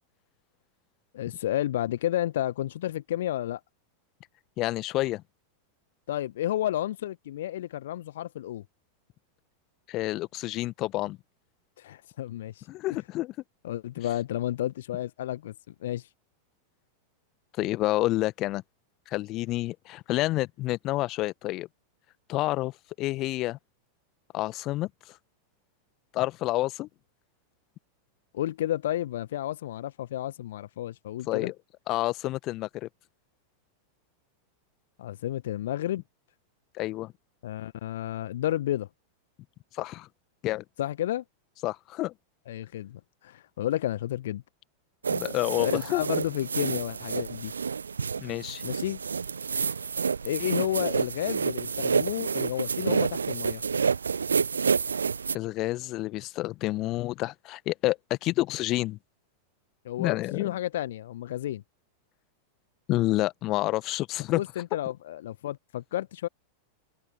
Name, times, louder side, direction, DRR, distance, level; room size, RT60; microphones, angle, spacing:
voice 1, 1.1-3.6 6.1-8.6 11.8-12.7 13.6-15.5 15.8-16.1 28.3-31.5 35.0-36.0 37.4-38.9 40.8-41.2 42.5-44.4 45.6-47.5 48.6-49.0 50.2-53.6 59.8-61.6 64.3-66.3, left 13 dB, 60° left, 1.0 m, -31 dB
voice 2, 4.6-5.2 9.9-11.2 12.7-13.3 17.6-18.6 19.1-21.7 22.3-23.6 24.3-24.9 26.1-26.9 31.3-31.5 31.9-32.9 36.7-37.1 39.7-40.1 40.4-40.6 41.6-42.1 45.1-46.0 48.2-48.6 55.3-59.0 60.0-60.5 62.9-64.4, left 17 dB, 35° left, 1.6 m, -29 dB
sound 1, 45.0-55.4, right 5 dB, 75° right, 0.8 m, -29 dB
open air
figure-of-eight pair, 90°, 0 cm